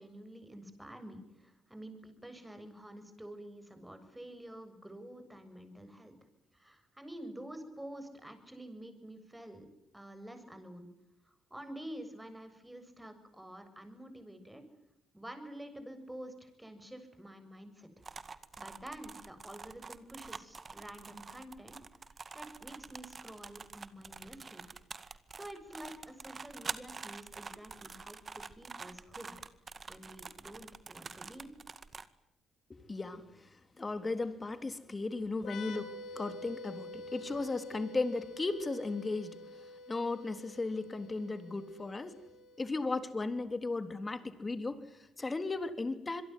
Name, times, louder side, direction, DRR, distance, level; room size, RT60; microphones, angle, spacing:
voice 1, 0.0-6.1 6.5-9.7 9.9-10.9 11.2-14.6 15.1-18.1 18.6-21.8 22.3-24.6 25.0-29.3 29.9-31.5, right 1 dB, 10° right, 8 dB, 7.4 m, -49 dB
sound 1, 18.0-32.1, right 4 dB, 35° right, 2.0 m, -46 dB
voice 2, 32.7-42.2 42.6-46.2, left 3 dB, 25° left, 9 dB, 3.8 m, -36 dB
sound 2, 35.4-42.9, left 3 dB, 70° left, 5.6 m, -48 dB
26.5 x 22.5 x 9.6 m, 0.81 s
cardioid pair, 90°, 0 cm